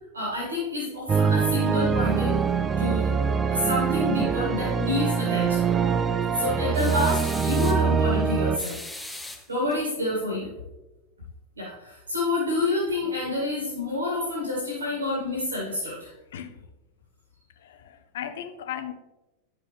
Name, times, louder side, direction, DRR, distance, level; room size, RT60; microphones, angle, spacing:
voice 1, 0.1-2.4 2.8-3.2 3.5-5.6 6.3-8.8 9.2-10.5 11.6-16.1, left 2 dB, 75° right, 2.3 m, -28 dB
sound 1, 1.1-8.6, right 6 dB, 20° right, 0.4 m, -24 dB
sound 2, 6.7-7.9 8.6-9.8, left 1 dB, 5° left, 0.7 m, -39 dB
voice 2, 17.6-18.9, left 10 dB, 60° left, 0.7 m, -36 dB
9.7 x 6.4 x 3.4 m
figure-of-eight pair, 90°, 0 cm